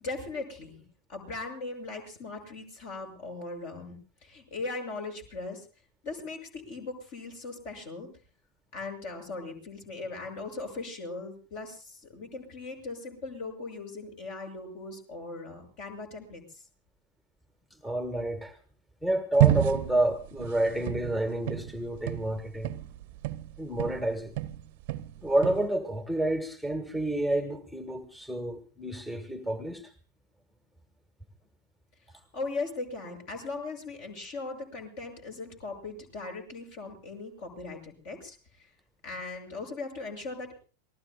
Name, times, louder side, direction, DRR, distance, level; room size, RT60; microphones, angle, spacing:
voice 1, 0.0-0.8 1.1-5.7 6.0-8.1 8.7-16.6 32.1-38.7 39.0-40.6, left 3 dB, 45° left, 6.5 m, -39 dB
voice 2, 17.8-18.6 19.0-22.7 23.6-24.3 25.2-29.9, right 1 dB, 5° left, 1.6 m, -29 dB
sound 1, 19.4-24.1 24.4-25.7, right 15 dB, 50° right, 0.9 m, -29 dB
27.5 x 19.5 x 2.3 m
figure-of-eight pair, 90°, 0 cm